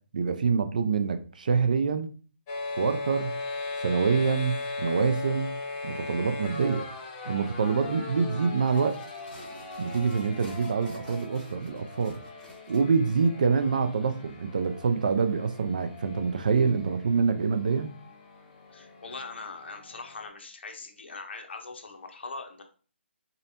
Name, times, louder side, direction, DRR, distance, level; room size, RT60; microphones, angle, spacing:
voice 1, 0.1-2.1 2.8-3.4 3.8-5.6 5.8-6.9 7.3-9.0 9.8-12.2 12.7-17.9, right 5 dB, 40° right, 0.4 m, -26 dB
sound 1, 2.5-20.3, left 3 dB, 20° left, 0.6 m, -39 dB
sound 2, 8.5-12.8, equal, ahead, 1.2 m, -50 dB
voice 2, 18.7-22.6, left 3 dB, 65° left, 1.0 m, -41 dB
4.0 x 3.2 x 2.8 m
hypercardioid pair, 170°, 7 cm